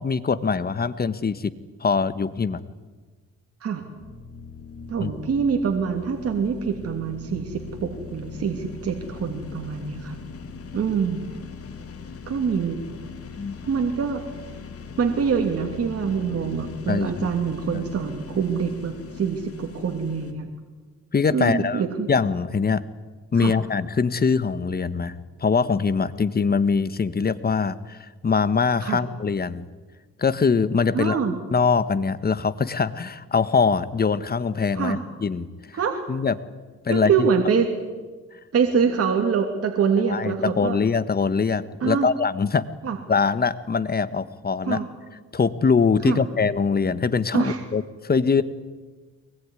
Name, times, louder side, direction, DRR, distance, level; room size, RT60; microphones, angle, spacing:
voice 1, 0.0-1.5 1.8-2.6 5.0-5.1 13.4-13.6 16.9-17.3 17.7-17.9 21.1-21.8 22.1-22.9 23.3-29.6 30.2-31.2 31.5-35.5 36.1-36.3 36.8-37.3 40.1-42.7 43.1-44.8 45.3-48.4, left 5 dB, 30° left, 14 dB, 1.4 m, -23 dB
sound 1, 4.0-20.3, left 5 dB, 50° left, 3.3 m, -40 dB
voice 2, 4.9-10.2 10.7-11.2 12.3-12.8 13.7-14.2 15.0-20.5 21.3-22.1 23.4-23.5 28.8-29.0 30.9-31.3 34.7-35.0 35.7-36.0 36.9-37.7 38.5-40.8 41.8-42.1 42.8-43.0 44.7-44.9 46.0-46.2 47.3-47.6, right 6 dB, 50° right, 3 dB, 2.8 m, -25 dB
23.0 x 20.0 x 9.9 m, 1.3 s
cardioid pair, 90°, 30 cm